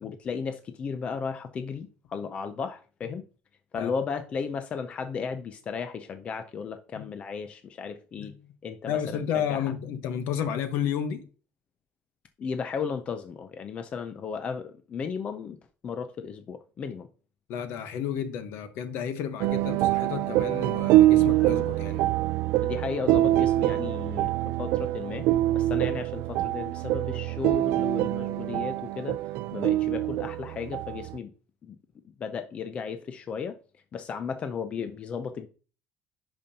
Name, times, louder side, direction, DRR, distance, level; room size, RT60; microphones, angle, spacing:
voice 1, 0.0-3.2 3.7-8.3 8.6-9.6 12.4-15.6 15.8-17.1 21.1-21.3 22.6-25.3 25.5-29.2 29.5-31.3 31.6-31.8 32.2-33.6 33.9-35.5, left 6 dB, 25° left, 0.5 m, -35 dB
voice 2, 8.9-11.3 17.5-22.0, left 8 dB, 60° left, 1.0 m, -32 dB
sound 1, 19.4-31.2, right 15 dB, 60° right, 0.4 m, -25 dB
11.0 x 5.2 x 2.8 m
cardioid pair, 170°, 5 cm